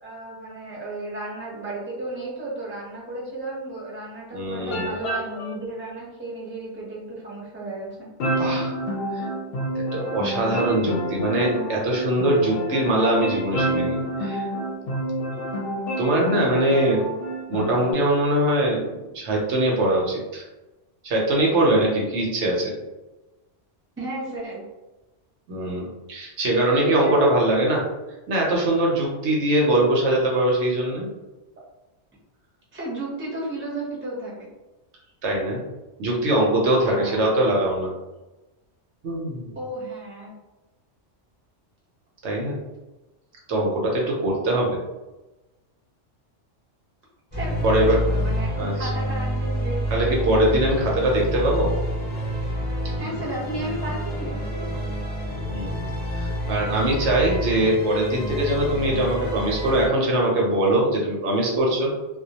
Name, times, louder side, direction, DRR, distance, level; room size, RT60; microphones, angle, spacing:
voice 1, 0.0-8.1 24.0-24.6 26.8-27.3 32.7-34.5 36.8-37.2 39.5-40.3 47.3-50.5 53.0-54.7, right 2 dB, 15° right, -6 dB, 0.5 m, -33 dB
voice 2, 4.3-4.9 8.4-8.7 9.1-9.3 9.9-14.5 16.0-17.1 17.5-18.9 19.1-20.4 21.0-22.7 25.5-27.8 28.3-31.1 35.2-35.6 36.0-37.9 39.0-39.5 42.2-42.6 43.5-44.8 47.6-48.0 48.6-48.9 49.9-51.7 55.5-55.8 56.1-61.9, right 1 dB, 70° right, -2 dB, 0.8 m, -22 dB
sound 1, 4.7-5.5 8.2-17.9, equal, 60° left, 0.7 m, -28 dB
sound 2, 47.3-59.9, equal, 10° left, 0.9 m, -28 dB
2.2 x 2.1 x 2.7 m, 1.1 s
omnidirectional pair, 1.3 m